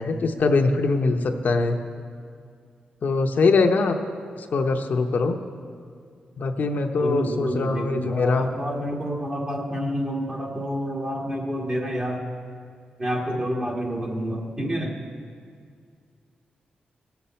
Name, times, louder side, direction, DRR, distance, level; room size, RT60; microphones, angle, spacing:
voice 1, 0.0-1.8 3.0-3.9 4.4-5.4 6.4-8.5, left 3 dB, 65° left, 5 dB, 0.8 m, -22 dB
voice 2, 7.0-12.2 13.0-15.0, equal, 35° right, -2 dB, 1.7 m, -28 dB
17.5 x 7.0 x 4.3 m, 2.2 s
cardioid pair, 65°, 3 cm